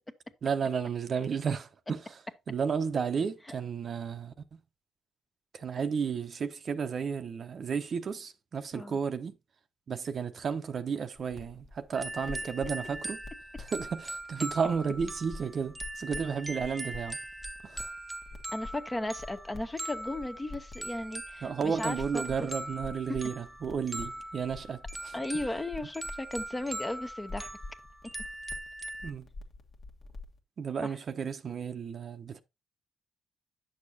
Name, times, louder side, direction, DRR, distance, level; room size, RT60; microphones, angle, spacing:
voice 1, 0.4-2.2 2.5-4.3 5.5-9.3 9.9-13.2 13.6-17.2 17.6-17.9 21.4-25.1 29.0-29.3 30.6-32.4, right 6 dB, 50° right, 0.8 m, -33 dB
sound 1, 11.2-30.4, left 2 dB, 45° left, 1.4 m, -48 dB
sound 2, 11.9-29.1, right 1 dB, 10° right, 1.0 m, -41 dB
voice 2, 18.5-22.5 25.1-27.6 30.8-30.9, left 1 dB, 15° left, 0.9 m, -36 dB
9.6 x 6.5 x 2.7 m
cardioid pair, 90°, 0 cm